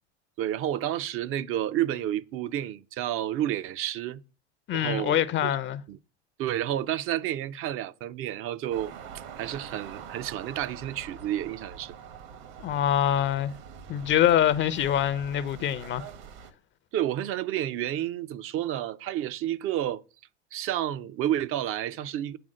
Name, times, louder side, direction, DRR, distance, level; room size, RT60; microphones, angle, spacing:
voice 1, 0.4-4.2 4.7-5.5 5.9-6.0 6.4-8.9 9.4-12.0 16.9-20.0 20.5-22.4, right 12 dB, 40° right, 0.5 m, -30 dB
voice 2, 4.7-5.8 12.6-13.5 13.9-16.1, left 10 dB, 35° left, 0.5 m, -24 dB
sound 1, 8.7-16.5, right 7 dB, 60° right, 1.2 m, -44 dB
7.9 x 3.5 x 6.3 m
hypercardioid pair, 80°, 34 cm